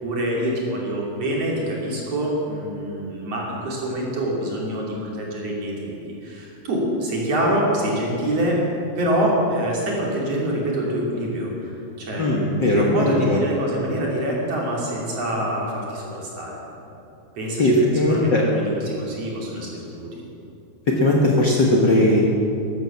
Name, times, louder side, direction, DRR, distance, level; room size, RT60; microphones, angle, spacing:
voice 1, 0.0-8.6 9.0-11.7 12.0-16.6 17.4-17.6 18.1-20.3, right 1 dB, 55° right, -3 dB, 3.9 m, -25 dB
voice 2, 12.2-13.4 17.6-18.4 20.9-22.2, left 1 dB, 45° left, -2 dB, 1.6 m, -18 dB
12.5 x 12.5 x 7.5 m, 2.8 s
omnidirectional pair, 3.4 m